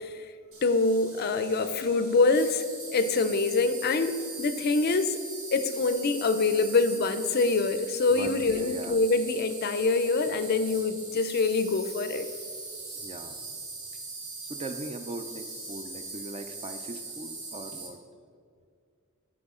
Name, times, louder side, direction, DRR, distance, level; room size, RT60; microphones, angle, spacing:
Insect, 0.5-17.9, right 3 dB, 75° right, 1.5 m, -41 dB
voice 1, 0.6-2.6 2.9-5.2 5.5-12.3, left 3 dB, 45° left, 10 dB, 0.4 m, -25 dB
voice 2, 8.1-9.0 12.9-13.4 14.4-18.0, right 2 dB, 30° right, 8 dB, 0.4 m, -40 dB
13.0 x 4.4 x 3.7 m, 2.2 s
head